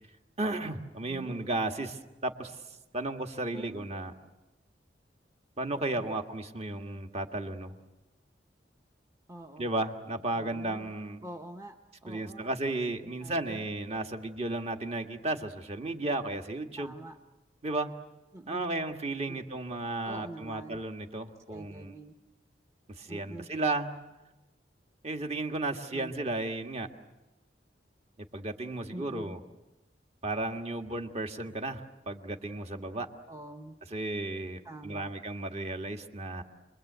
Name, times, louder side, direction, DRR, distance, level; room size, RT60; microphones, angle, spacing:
voice 1, 0.4-2.6 2.9-4.1 5.6-7.7 9.6-11.2 12.1-16.9 17.6-17.9 18.5-22.0 22.9-23.9 25.0-26.9 28.3-29.4 30.2-33.1 33.9-36.4, right 2 dB, 35° right, 5 dB, 1.8 m, -34 dB
voice 2, 1.1-1.6 3.5-3.9 6.0-6.1 9.3-9.7 10.3-10.9 11.2-12.5 13.0-13.6 16.8-17.2 18.3-18.7 19.3-19.4 20.0-20.8 21.5-22.2 23.1-23.5 25.7-26.2 28.9-29.4 33.3-33.8 34.6-35.1, right 1 dB, 15° right, 4 dB, 1.0 m, -45 dB
29.0 x 22.0 x 8.1 m, 1.0 s
head